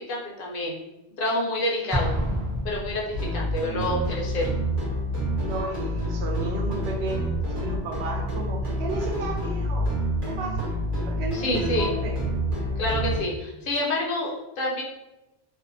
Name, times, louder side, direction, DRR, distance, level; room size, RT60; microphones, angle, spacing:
voice 1, 0.1-0.8 1.2-2.1 2.6-4.5 11.3-11.9 12.8-14.8, left 1 dB, 65° left, -2 dB, 0.7 m, -28 dB
Explosion, 1.9-3.6, equal, 30° right, 0.3 m, -28 dB
sound 1, 3.1-13.2, equal, 55° right, 0.9 m, -28 dB
voice 2, 5.4-9.9 10.2-10.7 11.0-12.2, right 2 dB, 85° right, 0 dB, 0.9 m, -33 dB
2.6 x 2.0 x 2.5 m, 0.97 s
omnidirectional pair, 1.1 m